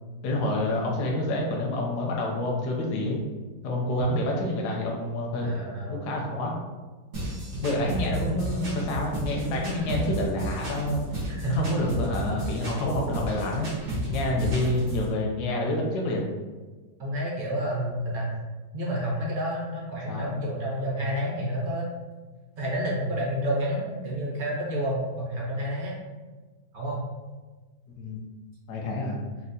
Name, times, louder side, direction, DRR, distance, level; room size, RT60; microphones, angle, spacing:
voice 1, 0.2-3.2 3.6-5.5 5.9-6.5 7.6-11.0 11.5-13.7 14.1-16.3 20.1-20.3 28.0-28.2 28.7-29.2, left 1 dB, 75° left, -1 dB, 1.1 m, -28 dB
voice 2, 5.4-6.1 7.7-8.5 9.7-9.9 11.3-11.5 14.2-14.3 17.0-18.3 18.7-21.8 22.6-26.0 26.7-27.0, equal, 45° right, -4 dB, 0.7 m, -30 dB
sound 1, 7.1-15.1, equal, 80° right, 1.7 m, -32 dB
4.4 x 2.1 x 2.6 m, 1.3 s
omnidirectional pair, 1.8 m